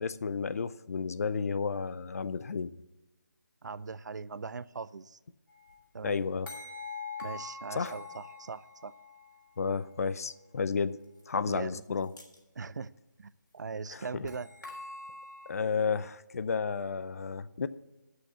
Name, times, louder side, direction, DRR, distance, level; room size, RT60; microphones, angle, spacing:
voice 1, 0.0-2.7 6.0-6.5 7.7-7.9 9.6-11.0 11.3-12.1 13.9-14.3 15.5-17.7, left 5 dB, 50° left, 15 dB, 0.5 m, -32 dB
voice 2, 3.6-5.2 5.9-6.2 7.2-8.9 11.5-11.8 12.6-12.9 13.2-14.5, right 4 dB, 65° right, 18 dB, 0.5 m, -40 dB
sound 1, 5.5-5.8 6.5-9.4 11.2-11.3 11.7-11.8 12.0-12.4 14.3-15.5, left 4 dB, 90° left, 3.5 m, -44 dB
9.8 x 6.4 x 8.0 m, 1.0 s
figure-of-eight pair, 160°, 10 cm